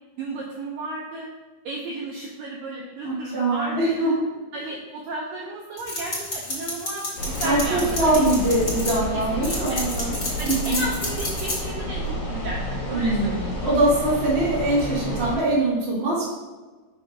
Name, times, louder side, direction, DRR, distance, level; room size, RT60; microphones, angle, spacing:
voice 1, 0.2-1.3 1.7-4.2 4.5-8.2 9.1-9.8 10.4-13.5, right 2 dB, 80° right, -2 dB, 2.0 m, -34 dB
voice 2, 3.0-4.2 7.4-10.1 10.4-10.8 12.9-16.2, right 1 dB, 25° right, -7 dB, 1.3 m, -23 dB
sound 1, 5.8-8.9 9.4-11.6, left 2 dB, 85° left, 0.6 m, -30 dB
sound 2, 7.2-15.4, equal, 55° left, 3.1 m, -30 dB
6.2 x 5.4 x 3.6 m, 1.3 s
omnidirectional pair, 4.6 m